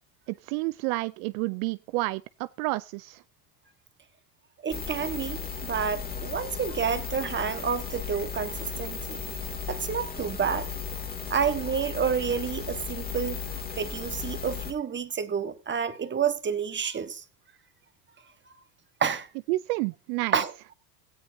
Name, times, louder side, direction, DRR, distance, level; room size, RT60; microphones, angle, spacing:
voice 1, 0.4-3.2 19.5-20.4, right 21 dB, 65° right, 0.6 m, -30 dB
voice 2, 4.6-9.2 9.7-10.7 11.3-13.4 13.8-17.2 19.0-19.3 20.3-20.5, right 7 dB, 20° right, 1.5 m, -29 dB
sound 1, 4.7-14.7, left 6 dB, 20° left, 2.5 m, -35 dB
17.5 x 13.5 x 2.7 m
supercardioid pair, 110°, 49 cm